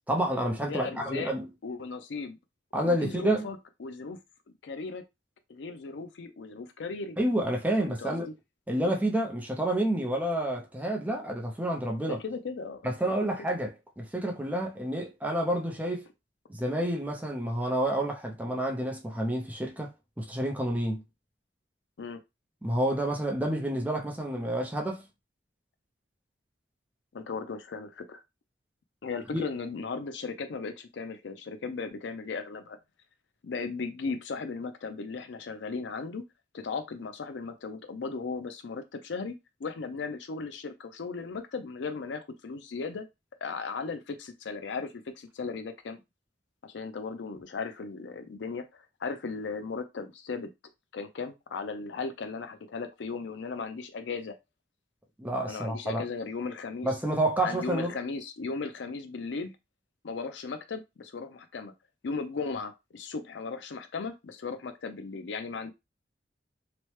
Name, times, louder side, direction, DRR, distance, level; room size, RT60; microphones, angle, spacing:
voice 1, 0.1-1.5 2.7-3.5 7.2-8.3 8.7-12.2 12.8-16.1 16.5-19.9 20.2-21.0 22.6-25.1 29.3-29.4 55.2-56.0 56.8-58.0, right 1 dB, 10° right, 0.5 m, -29 dB
voice 2, 0.6-1.3 1.6-2.4 2.8-4.2 4.6-5.0 5.5-7.2 7.8-8.3 12.1-12.9 13.2-13.3 22.0-22.2 27.1-28.2 29.0-32.8 33.4-36.2 36.5-43.1 43.4-46.0 46.6-48.7 49.0-50.5 50.9-54.4 55.4-56.9 57.4-59.5 60.0-61.7 62.0-65.7, left 4 dB, 80° left, 0.5 m, -36 dB
2.9 x 2.1 x 3.1 m
head